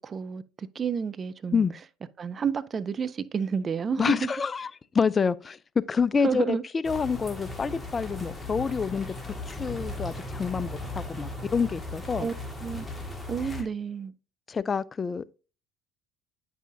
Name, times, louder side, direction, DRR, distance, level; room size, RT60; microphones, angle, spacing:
voice 1, 0.0-1.6 2.2-4.3 6.2-6.6 12.2-12.3 12.6-12.8 13.3-14.1, right 6 dB, 35° right, 0.5 m, -30 dB
voice 2, 4.0-6.6 6.8-9.1 9.5-12.3 14.5-15.2, left 5 dB, 30° left, 0.3 m, -27 dB
sound 1, 6.8-13.6, left 2 dB, 10° left, 1.8 m, -37 dB
9.4 x 5.5 x 2.6 m
hypercardioid pair, 65°, 0 cm